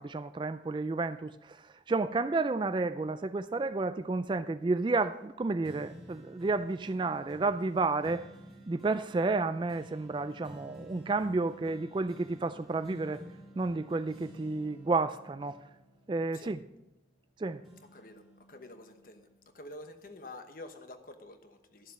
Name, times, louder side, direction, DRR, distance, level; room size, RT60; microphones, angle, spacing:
voice 1, 0.0-8.2 8.7-13.2 13.6-15.6 16.1-16.6 17.4-17.6, right 3 dB, 25° right, 12 dB, 0.3 m, -31 dB
sound 1, 5.6-17.3 17.6-19.5 20.0-20.1, equal, ahead, 2.6 m, -52 dB
voice 2, 17.9-19.3 19.5-21.9, left 2 dB, 50° left, 7 dB, 1.1 m, -48 dB
12.5 x 7.3 x 5.5 m, 0.91 s
head